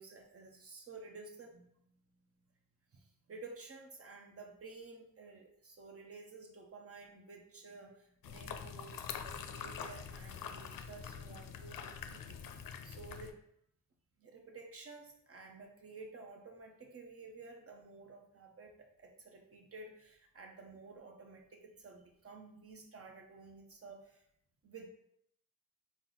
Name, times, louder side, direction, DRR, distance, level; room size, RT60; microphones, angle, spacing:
voice 1, 0.0-1.7 2.9-9.0 9.2-12.4 12.8-13.3 14.2-24.2 24.6-24.9, right 3 dB, 40° right, 2 dB, 0.9 m, -52 dB
sound 1, 8.2-13.3, left 7 dB, 70° left, 0.5 m, -45 dB
4.4 x 2.1 x 3.9 m, 0.72 s
cardioid pair, 65°, 35 cm